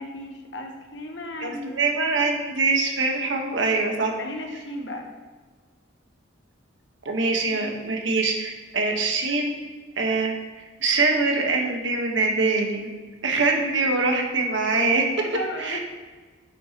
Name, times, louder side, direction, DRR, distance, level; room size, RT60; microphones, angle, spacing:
voice 1, 0.0-1.7 4.2-5.1 7.5-7.7 15.2-15.8, left 1 dB, 65° left, 4 dB, 1.1 m, -35 dB
voice 2, 1.4-4.1 7.0-9.5 10.0-10.3 10.8-12.9 13.2-15.1 15.6-15.8, right 3 dB, 70° right, 1 dB, 1.3 m, -23 dB
10.0 x 7.3 x 3.0 m, 1.4 s
head